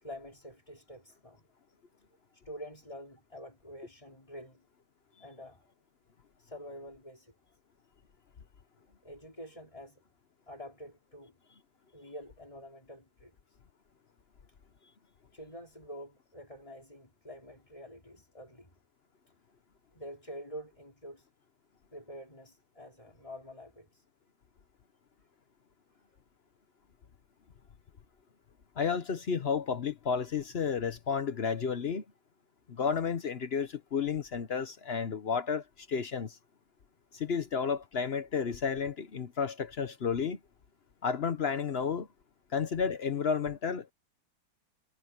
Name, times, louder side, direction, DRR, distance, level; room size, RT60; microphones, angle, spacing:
voice 1, 0.0-1.4 2.3-4.6 5.2-5.7 6.4-7.3 9.0-10.0 10.5-11.3 11.9-13.6 15.3-18.7 19.9-21.3 21.9-24.0, equal, 15° left, 4.3 m, -47 dB
voice 2, 28.8-32.0 32.7-36.4 37.1-40.4 41.0-42.1 42.5-43.9, left 6 dB, 65° left, 0.6 m, -32 dB
omnidirectional pair, 2.4 m